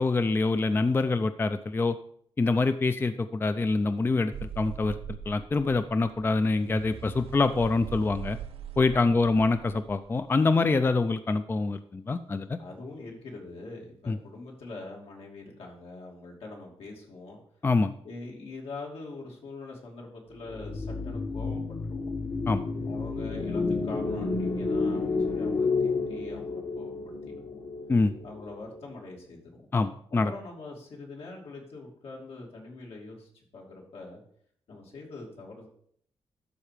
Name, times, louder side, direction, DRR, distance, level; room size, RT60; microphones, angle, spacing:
voice 1, 0.0-2.0 2.4-5.0 5.3-8.4 8.8-12.6 14.1-14.2 17.6-17.9 22.5-22.6 27.9-28.1 29.7-30.3, left 3 dB, 25° left, 10 dB, 0.4 m, -25 dB
sound 1, 4.3-10.4, right 9 dB, 90° right, 0.6 m, -42 dB
voice 2, 12.6-17.4 18.0-22.1 22.8-27.6 28.2-29.7 30.2-34.2 34.7-35.7, left 3 dB, 80° left, -1 dB, 2.7 m, -43 dB
sound 2, 20.5-28.8, left 4 dB, 45° left, 1.1 m, -31 dB
12.0 x 4.5 x 4.9 m, 0.64 s
wide cardioid pair, 115°, 10 cm